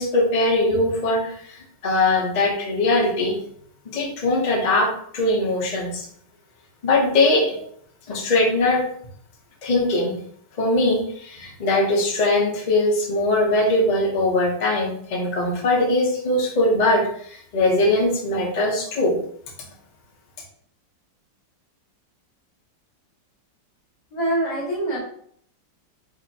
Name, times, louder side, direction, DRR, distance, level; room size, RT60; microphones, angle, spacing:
voice 1, 0.0-3.4 3.9-6.1 6.8-7.6 8.1-8.8 9.6-10.2 10.6-19.2, left 2 dB, 40° left, -2 dB, 0.6 m, -21 dB
voice 2, 24.1-25.0, right 1 dB, 20° left, -7 dB, 1.5 m, -24 dB
5.1 x 2.8 x 2.8 m, 0.64 s
omnidirectional pair, 2.1 m